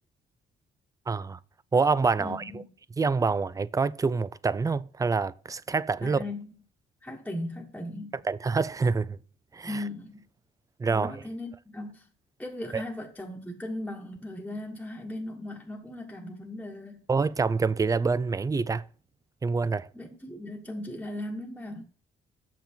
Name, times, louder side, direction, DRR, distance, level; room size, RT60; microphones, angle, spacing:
voice 1, 1.1-1.4 1.7-2.6 3.0-6.2 8.2-9.2 9.5-9.8 10.8-11.1 12.7-12.8 17.1-18.8 19.4-19.9, right 4 dB, 15° right, 0.3 m, -26 dB
voice 2, 2.2-2.7 6.0-6.5 7.0-8.2 9.7-10.2 10.9-12.0 12.4-17.0 19.9-21.8, left 1 dB, 5° left, 1.3 m, -38 dB
6.8 x 5.9 x 4.4 m
cardioid pair, 90°, 20 cm